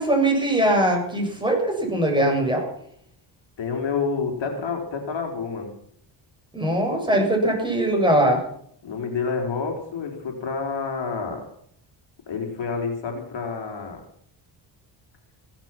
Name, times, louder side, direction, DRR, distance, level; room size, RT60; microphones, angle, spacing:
voice 1, 0.0-2.7 6.5-8.4, right 1 dB, 10° right, 1 dB, 7.4 m, -21 dB
voice 2, 3.6-5.7 8.8-11.5 12.3-14.0, left 5 dB, 65° left, 2 dB, 4.0 m, -28 dB
17.0 x 12.0 x 6.0 m, 0.66 s
cardioid pair, 85°, 48 cm